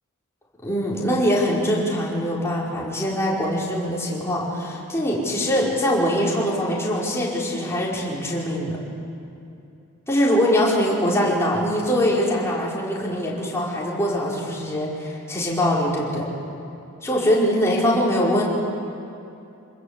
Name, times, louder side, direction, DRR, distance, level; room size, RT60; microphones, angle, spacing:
voice 1, 0.6-8.8 10.1-16.3 17.0-18.4, equal, 10° left, -5 dB, 5.2 m, -22 dB
27.0 x 21.0 x 8.5 m, 2.7 s
head